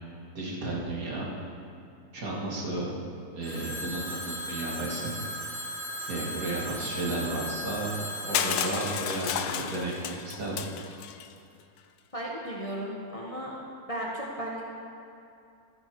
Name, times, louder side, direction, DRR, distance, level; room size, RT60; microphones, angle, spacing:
voice 1, 0.3-1.2 2.1-2.9 3.3-5.1 6.1-7.9 8.2-10.6, right 2 dB, 65° right, -4 dB, 2.3 m, -33 dB
Telephone, 3.4-10.2, equal, 40° right, 3.7 m, -37 dB
Crushing, 8.3-11.3, left 9 dB, 80° left, 1.1 m, -32 dB
voice 2, 12.1-13.6 13.9-14.6, right 1 dB, 25° left, -3 dB, 1.2 m, -35 dB
13.5 x 9.4 x 4.6 m, 2.5 s
omnidirectional pair, 1.6 m